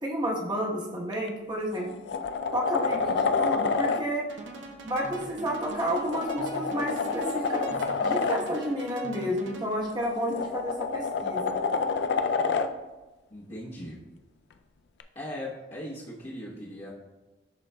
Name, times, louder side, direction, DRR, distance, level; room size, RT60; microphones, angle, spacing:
voice 1, 0.0-2.0 2.5-4.3 4.8-11.6, equal, 25° right, -3 dB, 1.1 m, -31 dB
sound 1, 1.1-1.3 1.7-4.0 5.7-8.4 9.9-12.7 15.0-15.1, left 4 dB, 60° left, 0.4 m, -28 dB
sound 2, 4.3-9.9, right 2 dB, 75° right, 0.7 m, -42 dB
voice 2, 13.3-14.0 15.1-16.9, left 1 dB, 35° left, -8 dB, 1.0 m, -39 dB
11.0 x 3.9 x 2.2 m, 1.1 s
head